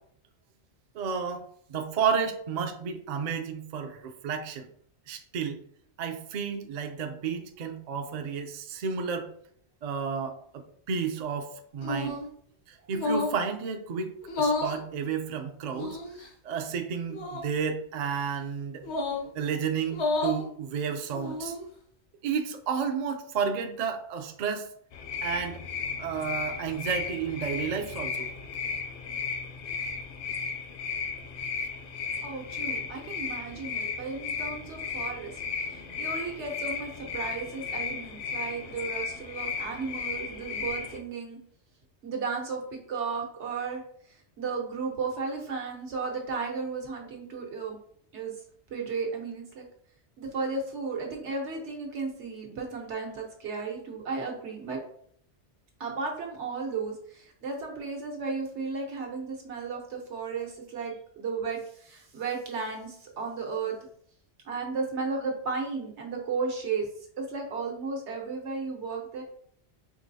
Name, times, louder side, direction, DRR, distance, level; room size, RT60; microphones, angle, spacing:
voice 1, 1.0-1.4 1.7-4.7 5.1-5.6 6.0-9.3 9.8-12.2 12.9-14.1 14.4-16.0 16.4-18.8 19.3-21.5 22.2-24.7 25.2-25.6 26.0-28.3, right 6 dB, 55° right, 7 dB, 0.4 m, -31 dB
sound 1, 11.8-12.3 12.9-13.4 14.2-14.8 15.7-16.3 17.1-17.5 18.8-19.3 19.9-20.4 21.1-21.7, left 2 dB, 80° left, 1.0 m, -30 dB
sound 2, 24.9-41.0, left 5 dB, 60° left, 0.7 m, -35 dB
voice 2, 32.2-41.4 42.0-43.8 44.1-47.8 48.1-48.3 48.7-49.6 50.2-54.8 55.8-63.7 64.4-66.9 67.2-69.2, right 4 dB, 85° right, 0 dB, 1.3 m, -34 dB
4.9 x 3.0 x 2.7 m, 0.63 s
omnidirectional pair, 1.1 m